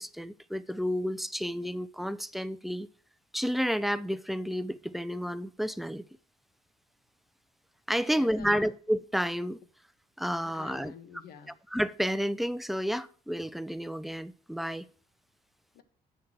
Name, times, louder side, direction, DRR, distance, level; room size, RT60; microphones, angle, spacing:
voice 1, 0.0-2.9 3.3-6.0 7.9-9.6 10.2-10.9 11.7-14.9, equal, ahead, 0.4 m, -31 dB
voice 2, 8.0-8.7 10.3-11.6 15.7-15.8, left 8 dB, 75° left, 1.4 m, -48 dB
8.2 x 5.9 x 6.2 m
cardioid pair, 150°, 16 cm